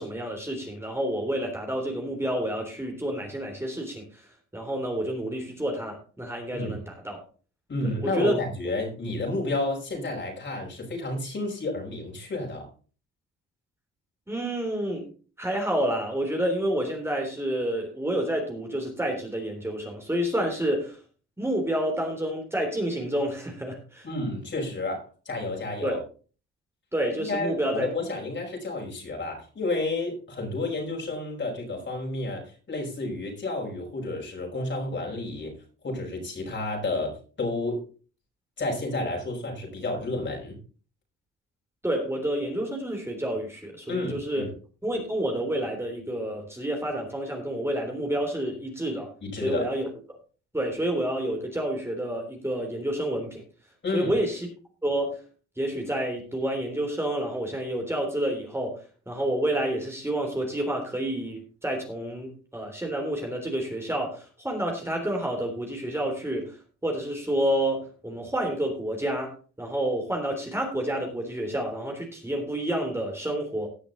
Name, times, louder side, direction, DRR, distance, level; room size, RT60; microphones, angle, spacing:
voice 1, 0.0-4.2 4.5-7.2 8.0-8.3 14.3-15.0 15.4-21.0 21.4-24.1 25.8-26.0 26.9-27.9 41.8-44.5 44.8-49.1 49.4-49.9 50.5-53.4 53.9-54.5 54.8-55.2 55.6-66.5 66.8-69.3 69.6-73.7, right 1 dB, 10° right, 1 dB, 3.4 m, -29 dB
voice 2, 7.7-12.7 24.0-26.0 27.3-35.6 35.8-37.8 38.6-40.6 43.9-44.5 49.2-49.7 53.8-54.1, left 2 dB, 40° left, 0 dB, 5.3 m, -31 dB
18.0 x 6.0 x 4.0 m, 0.38 s
cardioid pair, 90°, 30 cm